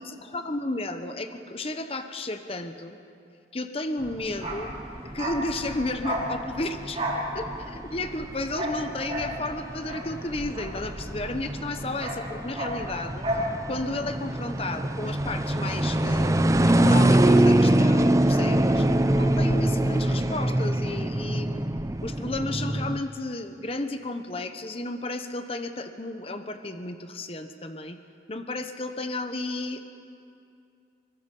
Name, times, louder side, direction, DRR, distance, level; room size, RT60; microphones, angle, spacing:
voice 1, 0.3-3.0 3.5-4.7 5.1-7.0 7.3-13.2 13.7-16.4 16.6-21.6 22.0-28.0 28.3-29.9, left 2 dB, 30° left, 8 dB, 1.0 m, -33 dB
sound 1, 4.0-23.0, right 1 dB, 15° right, 0.6 m, -24 dB
Bark, 4.3-11.3 11.6-13.5 13.8-14.0, equal, 30° right, 6.1 m, -33 dB
25.5 x 24.0 x 5.5 m, 2.5 s
head